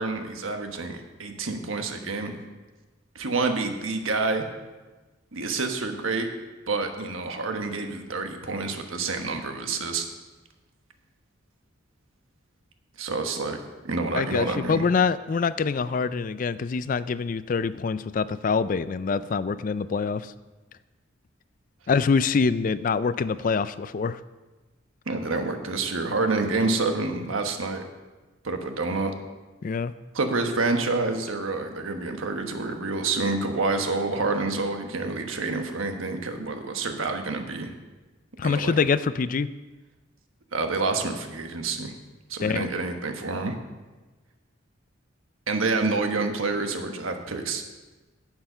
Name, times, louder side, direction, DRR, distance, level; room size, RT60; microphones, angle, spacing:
voice 1, 0.0-2.3 3.1-4.4 5.3-6.3 6.7-10.1 13.0-14.8 25.1-27.8 28.4-29.1 30.1-37.7 38.4-38.7 40.5-41.9 42.3-43.6 45.5-47.6, right 3 dB, 90° right, 5 dB, 1.3 m, -28 dB
voice 2, 14.2-20.3 21.9-24.2 29.6-29.9 38.4-39.5 42.4-42.7, left 5 dB, 40° left, 15 dB, 0.3 m, -25 dB
10.5 x 7.7 x 5.6 m, 1.2 s
head